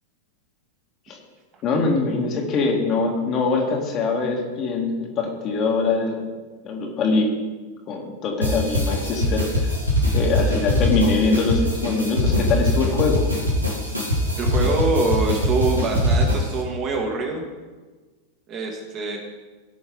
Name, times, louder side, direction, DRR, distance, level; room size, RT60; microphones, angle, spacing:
voice 1, 1.6-6.2 6.6-7.3 7.9-9.7 10.1-13.3, left 3 dB, 35° left, 0 dB, 2.1 m, -23 dB
sound 1, 8.4-16.6, left 1 dB, 85° right, 2.2 m, -22 dB
voice 2, 14.3-17.4 18.5-19.2, right 2 dB, 35° right, 0 dB, 2.4 m, -24 dB
16.5 x 6.3 x 3.8 m, 1.3 s
figure-of-eight pair, 90°, 0 cm